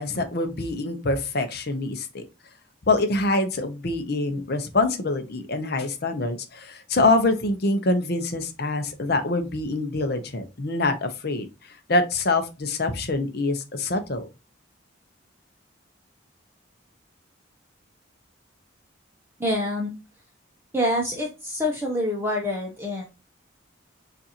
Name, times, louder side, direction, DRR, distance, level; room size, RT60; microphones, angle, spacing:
voice 1, 0.0-2.2 2.8-14.3, left 2 dB, 50° left, 7 dB, 0.7 m, -25 dB
voice 2, 19.4-19.9 20.7-23.0, left 1 dB, 10° right, -1 dB, 0.7 m, -26 dB
6.7 x 2.5 x 2.8 m, 0.28 s
head